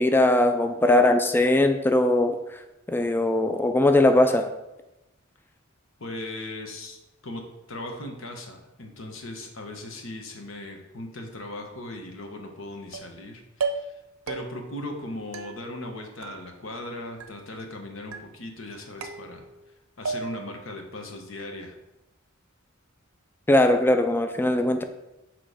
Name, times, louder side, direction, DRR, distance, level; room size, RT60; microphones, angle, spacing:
voice 1, 0.0-2.4 2.9-4.5 23.5-24.8, left 1 dB, 10° left, 7 dB, 0.3 m, -20 dB
voice 2, 6.0-7.0 7.2-14.0 14.3-19.5 20.0-21.8, left 1 dB, 70° left, 3 dB, 1.0 m, -38 dB
sound 1, 12.9-13.3 13.6-14.0 14.3-14.8 15.3-15.9 16.2-16.9 17.2-17.7 18.1-18.6 19.0-19.7 20.0-20.6, right 4 dB, 85° right, 0.5 m, -35 dB
6.3 x 3.1 x 5.0 m, 0.96 s
head